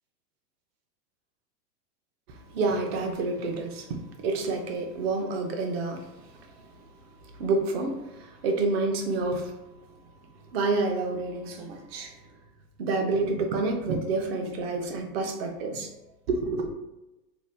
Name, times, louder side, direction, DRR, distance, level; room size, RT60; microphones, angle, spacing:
voice 1, 2.3-6.7 7.3-9.5 10.5-12.2 12.8-15.9 16.3-16.7, right 3 dB, 40° right, 0.5 m, -29 dB
2.8 x 2.1 x 3.3 m
hypercardioid pair, 125°, 50 cm